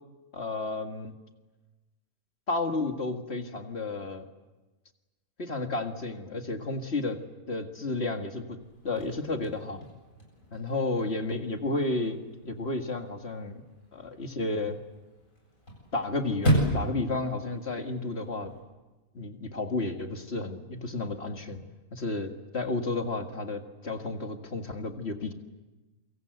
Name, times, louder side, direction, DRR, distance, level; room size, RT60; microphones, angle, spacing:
voice 1, 0.3-1.1 2.5-4.3 5.4-7.2 7.5-8.6 8.8-9.9 10.5-12.2 12.4-13.6 13.9-14.8 15.9-18.5 19.1-21.6 21.9-25.3, left 2 dB, 45° left, 5 dB, 2.2 m, -32 dB
Chirp tweet / Car / Slam, 8.6-18.6, right 1 dB, 65° left, 8.3 m, -35 dB
28.0 x 25.0 x 8.0 m, 1.2 s
omnidirectional pair, 1.5 m